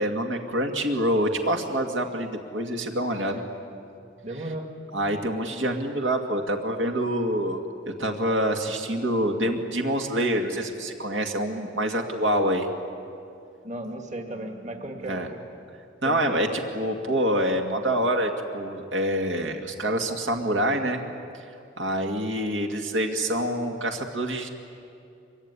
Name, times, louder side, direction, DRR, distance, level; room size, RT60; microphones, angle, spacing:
voice 1, 0.0-3.4 4.9-7.6 8.0-12.7 15.0-15.3 16.0-21.0 21.8-24.5, right 1 dB, 75° right, 3 dB, 2.2 m, -26 dB
voice 2, 4.2-4.7 5.6-5.8 13.6-15.4 16.0-16.6, right 1 dB, 40° right, 4 dB, 2.2 m, -35 dB
25.0 x 23.5 x 9.9 m, 2.6 s
head